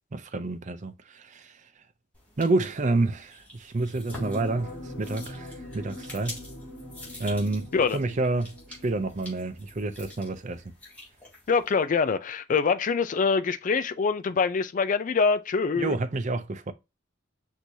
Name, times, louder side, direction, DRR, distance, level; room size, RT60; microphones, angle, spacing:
voice 1, 0.1-1.5 2.4-6.4 7.2-8.5 8.8-10.6 15.8-16.7, right 2 dB, 40° right, 0.5 m, -29 dB
sound 1, 2.1-11.8, left 1 dB, 10° left, 2.9 m, -47 dB
sound 2, 4.1-10.2 10.6-10.7, left 1 dB, 70° left, 1.4 m, -42 dB
voice 2, 11.5-16.0, left 5 dB, 45° left, 0.4 m, -24 dB
6.2 x 2.7 x 2.7 m
head